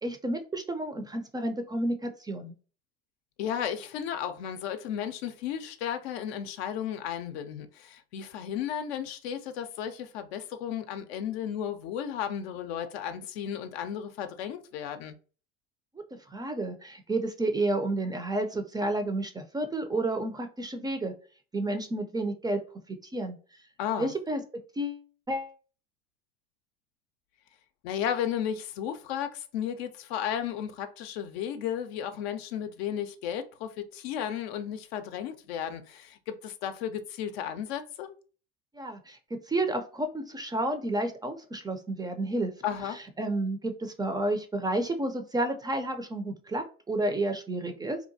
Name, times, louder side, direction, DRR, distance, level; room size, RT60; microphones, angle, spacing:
voice 1, 0.0-2.5 16.3-21.1 21.5-22.6 22.9-23.4 24.0-24.4 24.8-25.5 38.7-42.5 42.9-48.0, right 1 dB, 15° right, 0.3 m, -31 dB
voice 2, 3.4-15.1 23.8-24.1 27.8-38.1 42.6-43.0, left 9 dB, 75° left, 0.5 m, -34 dB
2.8 x 2.2 x 2.6 m
hypercardioid pair, 70°, 32 cm